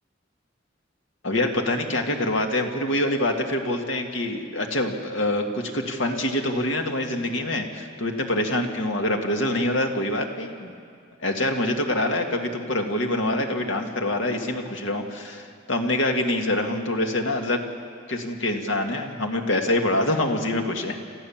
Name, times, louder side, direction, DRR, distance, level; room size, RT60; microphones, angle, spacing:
voice 1, 1.2-10.7 11.2-17.6 18.1-21.0, left 1 dB, 70° left, 3 dB, 2.0 m, -25 dB
27.5 x 14.0 x 7.3 m, 2.2 s
head